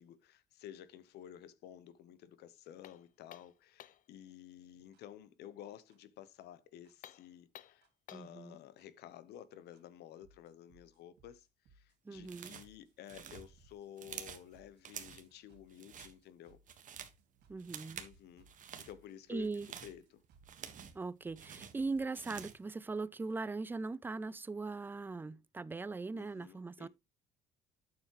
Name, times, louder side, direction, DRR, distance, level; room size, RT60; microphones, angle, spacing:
voice 1, 0.0-16.6 18.0-19.5 19.8-20.2 26.1-26.9, left 11 dB, 75° left, 1.0 m, -53 dB
sound 1, 2.8-4.1 6.9-8.4, left 11 dB, 50° left, 0.5 m, -56 dB
sound 2, 4.9-5.0 5.9-6.0 6.9-7.0 7.8-7.9 8.8-8.9 9.7-9.8 10.2-22.0, right 3 dB, 80° right, 3.0 m, -67 dB
voice 2, 8.1-8.6 12.0-12.6 17.5-18.0 19.3-19.7 20.9-26.9, right 3 dB, 10° right, 0.4 m, -40 dB
sound 3, 12.3-12.8 13.1-14.5 14.8-15.3 15.7-16.1 16.5-17.2 17.6-18.1 18.5-18.9 19.4-21.0 21.4-22.6, right 8 dB, 50° right, 1.5 m, -49 dB
9.5 x 7.1 x 3.0 m
cardioid pair, 110°, 17 cm